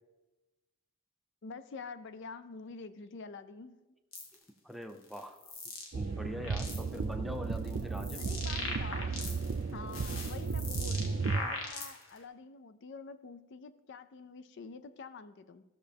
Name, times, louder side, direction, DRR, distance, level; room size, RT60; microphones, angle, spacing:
voice 1, 1.4-3.8 8.2-9.1 9.7-15.6, left 4 dB, 60° left, 12 dB, 0.5 m, -47 dB
sound 1, 4.1-4.3 5.0-5.9 6.3-7.0 7.5-9.6 9.9-12.2, left 3 dB, 75° left, 1.5 m, -41 dB
voice 2, 4.6-5.5 5.9-8.3, equal, ahead, 6 dB, 0.5 m, -43 dB
sound 2, 5.9-11.4, right 4 dB, 55° right, 0.4 m, -34 dB
15.0 x 6.5 x 3.4 m, 1.1 s
head